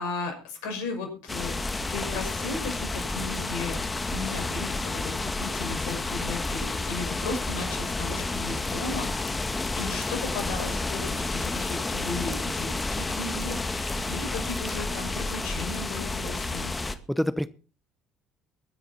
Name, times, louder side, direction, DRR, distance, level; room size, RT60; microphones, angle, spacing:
voice 1, 0.0-1.5 1.9-3.8 4.1-9.3 9.7-16.7, left 3 dB, 70° left, 4 dB, 5.8 m, -36 dB
sound 1, 1.3-17.0, left 2 dB, 20° left, 1.9 m, -30 dB
voice 2, 16.8-17.5, equal, ahead, 15 dB, 0.9 m, -28 dB
22.5 x 10.0 x 4.2 m, 0.36 s
hypercardioid pair, 55°, 0 cm